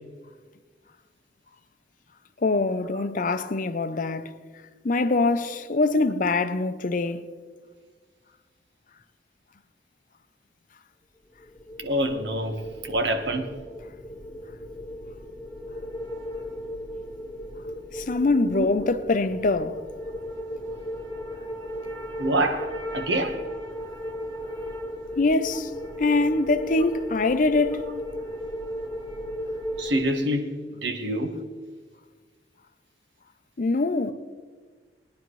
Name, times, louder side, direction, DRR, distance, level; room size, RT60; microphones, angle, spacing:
voice 1, 2.4-4.4 4.8-7.3 17.9-19.8 25.2-25.7 26.0-27.9 33.6-34.1, left 3 dB, 50° left, 0.6 m, -24 dB
sound 1, 11.4-30.0, equal, 15° left, 1.4 m, -36 dB
voice 2, 11.8-13.5 18.5-18.7 22.2-23.4 29.8-30.6 30.8-31.4, right 1 dB, 85° right, 1.3 m, -26 dB
20.0 x 10.5 x 3.2 m
head